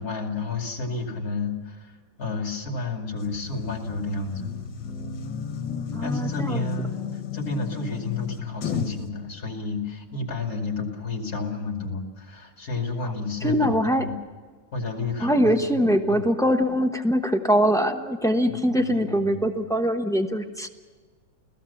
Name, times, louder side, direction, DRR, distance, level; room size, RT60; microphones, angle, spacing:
voice 1, 0.0-4.5 6.0-13.7 14.0-14.1 14.7-16.2 18.5-19.5, left 3 dB, 50° left, 3 dB, 3.1 m, -31 dB
sound 1, 3.2-9.1, left 7 dB, 75° left, 2.1 m, -33 dB
voice 2, 5.9-6.6 13.4-14.1 15.2-20.7, equal, 5° left, 5 dB, 0.7 m, -23 dB
29.5 x 16.5 x 7.2 m, 1.5 s
omnidirectional pair, 2.0 m